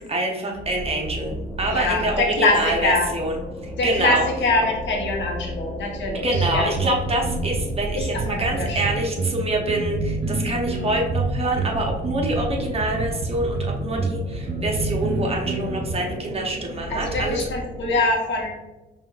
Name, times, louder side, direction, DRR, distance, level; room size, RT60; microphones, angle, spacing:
voice 1, 0.0-4.3 6.2-17.4, right 1 dB, 30° right, 0 dB, 0.8 m, -26 dB
sound 1, 0.5-18.0, left 1 dB, 5° left, 0.9 m, -35 dB
voice 2, 1.7-3.1 3.8-4.2 4.4-6.7 8.3-9.0 16.9-18.5, left 2 dB, 65° left, 0 dB, 1.0 m, -23 dB
sound 2, 6.3-15.9, right 4 dB, 60° right, 0.6 m, -27 dB
5.4 x 2.4 x 2.3 m, 1.1 s
cardioid pair, 90°, 20 cm